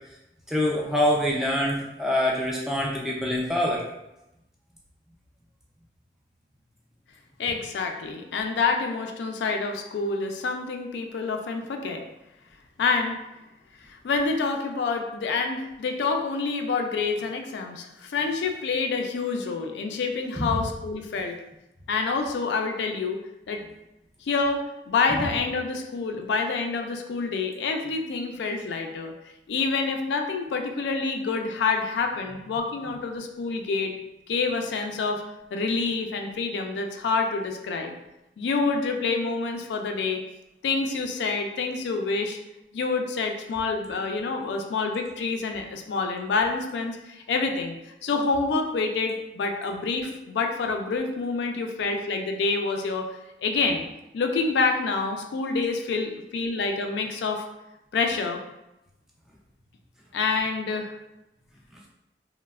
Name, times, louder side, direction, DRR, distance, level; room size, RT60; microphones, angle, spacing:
voice 1, 0.5-3.8 20.4-20.5, left 1 dB, 5° right, -4 dB, 0.3 m, -25 dB
voice 2, 7.4-12.0 12.8-13.2 13.8-21.4 21.9-23.2 23.5-23.6 24.2-29.1 29.5-34.0 34.3-35.2 35.5-38.0 38.4-40.2 40.6-42.4 42.7-53.1 53.4-53.8 54.1-57.4 57.9-58.4 60.1-60.9, left 4 dB, 85° left, 4 dB, 0.3 m, -27 dB
3.1 x 2.1 x 2.3 m, 0.92 s
head